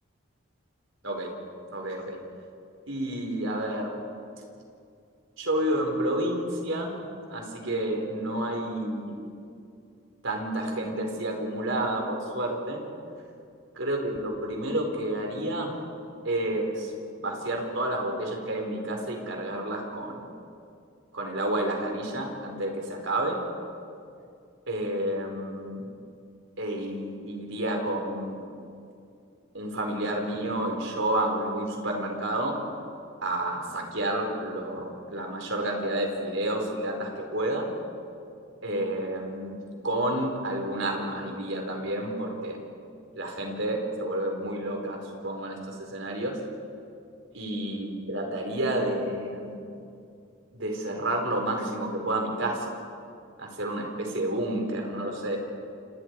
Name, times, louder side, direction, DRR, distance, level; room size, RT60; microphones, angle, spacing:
voice 1, 1.7-2.2 2.9-3.9 5.4-7.0 7.3-9.2 10.2-12.8 13.7-15.7 16.2-16.9 17.2-20.3 21.1-23.4 24.7-25.8 26.6-28.4 29.5-32.6 33.2-37.7 38.6-42.6 43.2-46.4 47.3-49.5 50.5-52.6 53.4-55.4, right 1 dB, 70° right, 1 dB, 4.8 m, -30 dB
29.5 x 28.0 x 4.9 m, 2.5 s
head